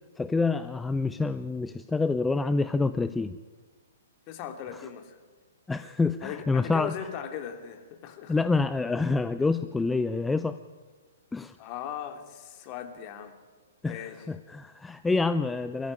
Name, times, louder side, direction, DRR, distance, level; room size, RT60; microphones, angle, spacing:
voice 1, 0.2-3.4 5.7-6.9 8.3-10.6 11.3-11.6 13.8-15.9, left 3 dB, 10° left, 12 dB, 0.6 m, -27 dB
voice 2, 4.3-5.1 6.2-8.4 11.6-13.3 13.8-14.3, left 9 dB, 35° left, 6 dB, 3.0 m, -38 dB
23.0 x 14.5 x 9.8 m, 1.5 s
hypercardioid pair, 125°, 0 cm